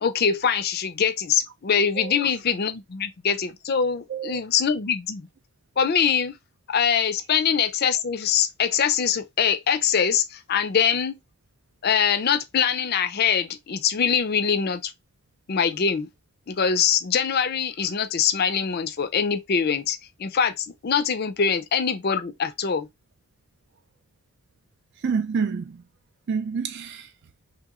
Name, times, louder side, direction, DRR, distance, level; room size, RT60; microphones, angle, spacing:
voice 1, 0.0-5.3 5.8-6.4 6.7-11.2 11.8-14.9 15.5-16.1 16.5-22.9, left 7 dB, 45° left, 0.4 m, -23 dB
voice 2, 2.0-2.3 4.1-4.4 25.0-25.8 26.3-27.1, right 5 dB, 50° right, 0.4 m, -28 dB
3.2 x 3.0 x 3.6 m
head